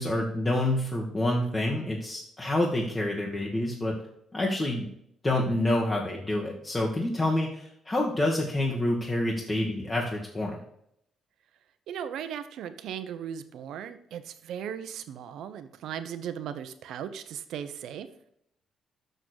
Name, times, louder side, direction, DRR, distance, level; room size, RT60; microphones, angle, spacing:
voice 1, 0.0-4.0 4.3-4.9 5.2-10.6, left 1 dB, 20° left, -2 dB, 1.6 m, -27 dB
voice 2, 11.9-18.1, right 9 dB, 80° right, 10 dB, 0.9 m, -37 dB
6.7 x 6.2 x 6.5 m, 0.73 s
cardioid pair, 90°, 0 cm